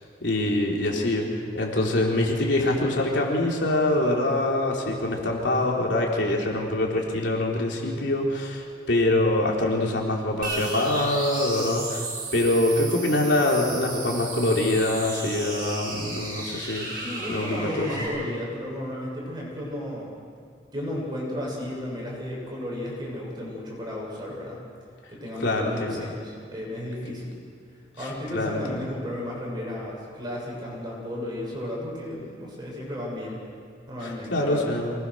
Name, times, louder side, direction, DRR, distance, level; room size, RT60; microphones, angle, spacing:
voice 1, 0.2-12.1 12.3-17.9 25.4-26.1 28.0-28.8 34.0-34.9, left 1 dB, 70° left, -1 dB, 3.8 m, -25 dB
sound 1, 10.4-18.1, right 2 dB, 50° right, 7.2 m, -34 dB
voice 2, 17.0-20.1 20.7-24.6 25.1-27.3 28.0-33.4 33.9-34.7, left 1 dB, 25° right, -3 dB, 7.5 m, -34 dB
25.5 x 20.5 x 6.5 m, 2.2 s
head